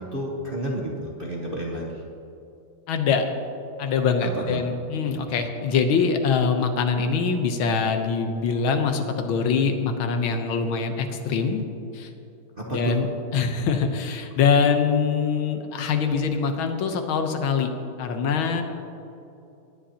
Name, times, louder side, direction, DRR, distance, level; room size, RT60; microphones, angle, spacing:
voice 1, 0.0-2.0 4.3-4.6 5.0-5.2 12.6-12.9, right 1 dB, 35° right, -3 dB, 0.9 m, -31 dB
voice 2, 2.9-3.3 3.8-11.6 11.9-12.1 12.7-17.7 18.0-18.6, left 5 dB, 75° left, 5 dB, 1.6 m, -23 dB
19.0 x 10.0 x 2.8 m, 2.8 s
omnidirectional pair, 2.3 m